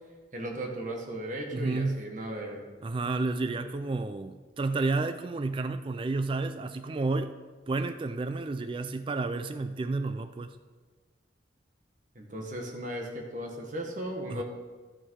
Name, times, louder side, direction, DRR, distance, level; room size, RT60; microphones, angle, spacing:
voice 1, 0.3-2.7 12.1-14.4, right 1 dB, 45° right, 2 dB, 1.5 m, -36 dB
voice 2, 1.5-2.0 2.8-7.3 7.7-10.5 14.3-14.4, right 3 dB, 30° right, 9 dB, 0.3 m, -31 dB
12.0 x 6.3 x 4.7 m, 1.4 s
head